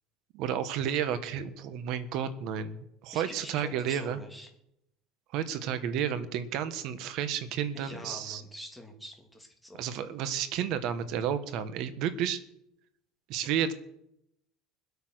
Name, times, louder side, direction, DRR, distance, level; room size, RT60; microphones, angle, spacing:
voice 1, 0.3-4.2 5.3-8.4 9.8-12.4 13.3-13.7, right 9 dB, 55° right, 12 dB, 1.4 m, -31 dB
voice 2, 3.1-4.5 7.7-10.0, equal, ahead, 3 dB, 2.4 m, -45 dB
21.0 x 8.4 x 6.4 m, 0.80 s
cardioid pair, 150°, 0 cm